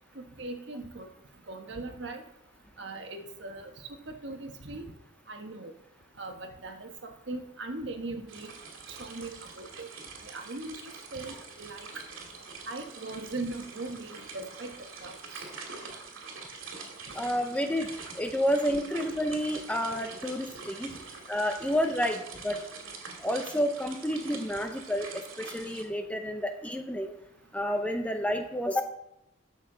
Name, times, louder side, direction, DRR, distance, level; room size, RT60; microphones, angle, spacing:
voice 1, 0.1-1.1 1.5-2.2 2.8-3.7 4.1-4.8 5.3-5.7 6.2-8.5 8.9-9.9 10.2-10.8 11.1-11.9 12.7-14.7 15.0-15.5 20.9-21.0, right 2 dB, 60° right, 4 dB, 1.2 m, -39 dB
sound 1, 8.3-25.8, right 4 dB, 80° right, 2.2 m, -45 dB
voice 2, 17.1-17.9 18.2-20.9 21.3-22.6 23.2-25.1 25.4-27.1 27.5-28.8, equal, 5° left, 5 dB, 0.6 m, -30 dB
12.5 x 7.3 x 3.8 m, 0.82 s
head